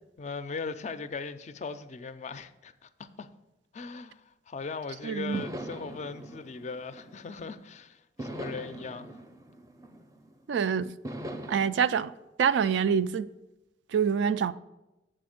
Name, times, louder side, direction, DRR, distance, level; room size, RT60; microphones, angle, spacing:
voice 1, 0.2-3.3 3.7-9.2, left 4 dB, 40° left, 0.4 m, -39 dB
sound 1, 4.7-4.8 5.3-7.6 8.2-10.4 11.0-11.7, right 1 dB, 20° right, 0.5 m, -41 dB
voice 2, 5.0-5.4 10.5-10.9 11.5-12.1 12.4-13.3 13.9-14.5, right 7 dB, 75° right, 0.3 m, -26 dB
7.7 x 4.3 x 6.4 m
head